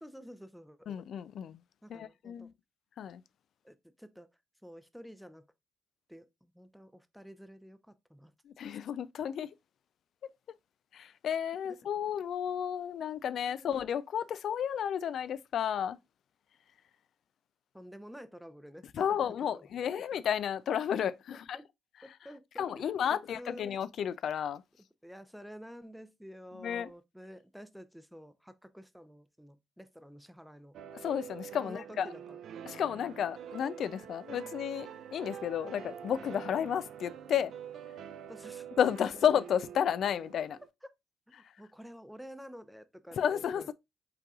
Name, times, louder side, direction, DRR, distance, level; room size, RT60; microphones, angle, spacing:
voice 1, 0.0-0.9 1.8-2.5 3.6-4.3 4.6-5.5 6.1-8.3 13.4-13.7 17.7-19.7 21.5-21.7 22.0-23.6 25.0-30.8 31.6-32.4 38.3-38.7 39.0-39.1 40.8-40.9 41.3-43.7, equal, ahead, 0.6 m, -50 dB
voice 2, 0.9-1.6 1.9-2.5 3.0-3.2 8.5-9.5 10.9-16.0 18.9-21.6 22.6-24.6 26.6-26.9 31.0-32.1 32.7-37.5 38.8-40.6 43.2-43.7, left 9 dB, 65° left, 0.3 m, -32 dB
sound 1, 30.7-40.7, right 9 dB, 70° right, 0.5 m, -46 dB
5.5 x 3.8 x 2.3 m
cardioid pair, 90°, 0 cm